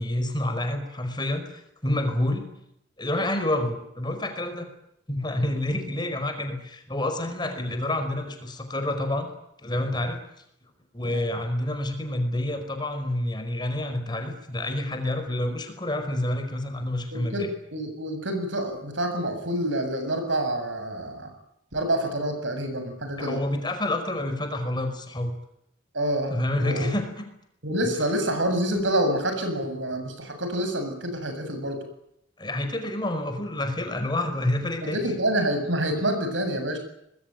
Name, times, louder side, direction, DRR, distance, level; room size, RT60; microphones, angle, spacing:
voice 1, 0.0-2.5 3.0-4.7 5.1-9.3 9.6-10.2 10.9-17.5 23.2-25.4 26.3-27.2 32.4-35.0, left 1 dB, 25° left, 6 dB, 5.1 m, -28 dB
voice 2, 17.1-21.3 21.7-23.4 25.9-26.9 27.6-31.8 34.8-36.8, right 1 dB, 75° right, 7 dB, 7.9 m, -27 dB
26.0 x 21.0 x 9.3 m, 0.77 s
head